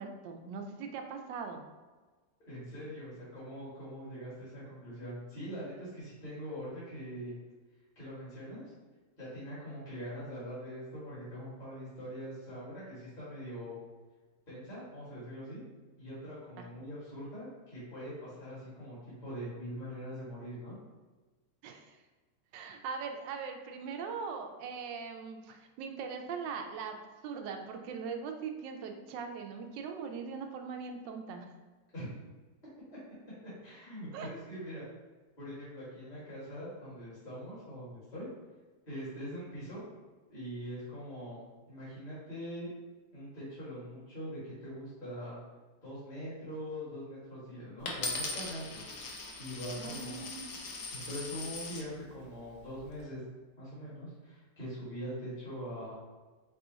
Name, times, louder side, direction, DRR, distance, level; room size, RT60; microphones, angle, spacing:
voice 1, 0.0-1.6 16.6-16.7 21.6-22.0 22.5-27.0 27.2-31.5 34.1-34.3 49.8-50.5, right 5 dB, 85° right, 5 dB, 1.2 m, -40 dB
voice 2, 2.4-7.4 7.9-8.6 9.2-13.8 14.5-15.6 16.0-20.8 31.9-32.1 33.6-34.9 35.4-38.3 38.9-39.8 40.3-42.7 43.1-45.4 45.8-48.8 49.4-50.2 50.9-53.2 53.6-55.9, equal, 25° left, -10 dB, 1.6 m, -43 dB
Coin (dropping), 47.9-51.9 52.6-53.0, left 3 dB, 60° left, 1.0 m, -40 dB
4.8 x 2.4 x 3.9 m, 1.3 s
omnidirectional pair, 1.9 m